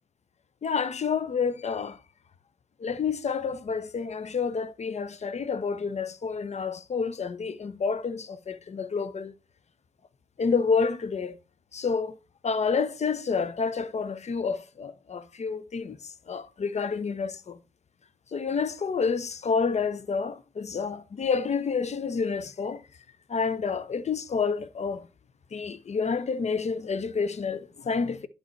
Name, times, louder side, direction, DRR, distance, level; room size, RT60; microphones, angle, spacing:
voice 1, 0.6-2.0 2.8-9.3 10.4-11.4 11.7-12.1 12.4-16.0 16.3-17.6 18.3-22.8 23.3-25.1 25.5-28.3, left 5 dB, 35° left, 0.8 m, -29 dB
11.0 x 4.7 x 3.2 m
hypercardioid pair, 40°, 19 cm